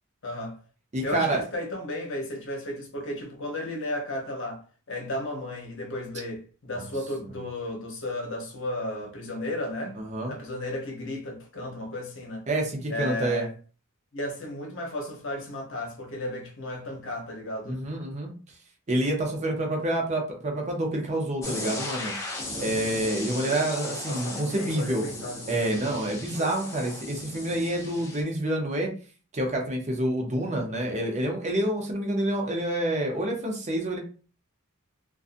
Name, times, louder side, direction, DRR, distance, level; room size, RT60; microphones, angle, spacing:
voice 1, 0.2-0.6 1.0-10.0 10.3-12.5 12.9-13.5 14.1-17.8 22.8-23.0 24.1-25.9 26.4-26.5, left 1 dB, 60° left, 0.8 m, -34 dB
voice 2, 0.9-1.4 6.8-6.9 7.2-7.3 9.9-10.3 12.5-13.4 17.7-18.3 18.9-22.1 22.6-25.0 25.5-28.9 29.3-34.0, right 1 dB, 35° right, 0.6 m, -28 dB
sound 1, 21.4-28.2, left 2 dB, 15° left, 0.6 m, -36 dB
2.5 x 2.3 x 2.5 m
head